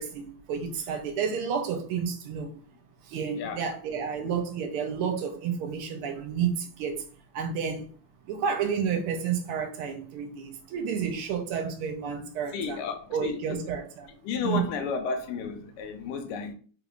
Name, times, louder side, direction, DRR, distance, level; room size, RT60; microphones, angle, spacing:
voice 1, 0.0-2.5 3.1-7.0 7.3-7.9 8.3-12.8 13.1-14.1 14.4-14.7, right 7 dB, 85° right, 1.5 m, -30 dB
voice 2, 12.5-13.6 14.2-16.5, left 5 dB, 85° left, 1.5 m, -32 dB
3.6 x 3.5 x 2.3 m
omnidirectional pair, 2.4 m